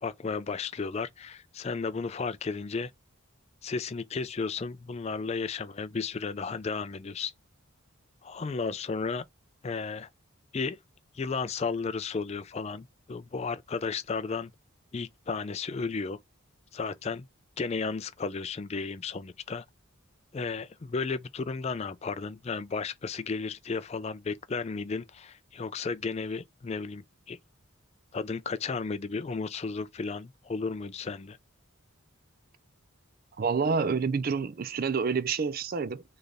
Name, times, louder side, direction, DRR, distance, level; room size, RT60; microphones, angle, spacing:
voice 1, 0.0-2.9 3.6-7.3 8.2-9.2 9.6-10.1 10.5-10.8 11.1-14.5 14.9-16.2 16.7-17.3 17.6-19.6 20.3-27.4 28.1-31.4, left 4 dB, 30° left, 0.3 m, -33 dB
voice 2, 33.4-36.0, right 5 dB, 40° right, 0.4 m, -28 dB
3.9 x 3.2 x 3.4 m
head